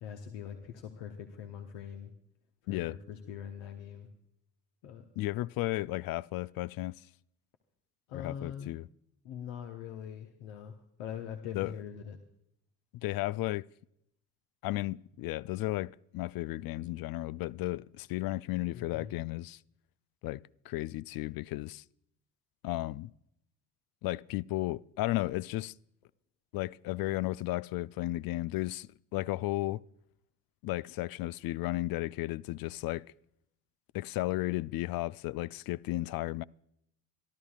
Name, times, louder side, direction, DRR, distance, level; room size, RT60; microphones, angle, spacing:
voice 1, 0.0-2.1 2.7-4.1 4.8-5.0 8.1-8.7 9.2-12.2 18.7-19.1, left 8 dB, 70° left, 1.2 m, -42 dB
voice 2, 2.7-3.0 5.2-6.9 8.1-8.9 11.5-11.7 12.9-13.7 14.6-19.6 20.2-21.8 22.6-23.1 24.0-25.7 26.5-29.8 30.6-33.0 33.9-36.4, left 18 dB, 50° left, 0.5 m, -34 dB
26.0 x 12.5 x 2.4 m
hypercardioid pair, 45°, 45 cm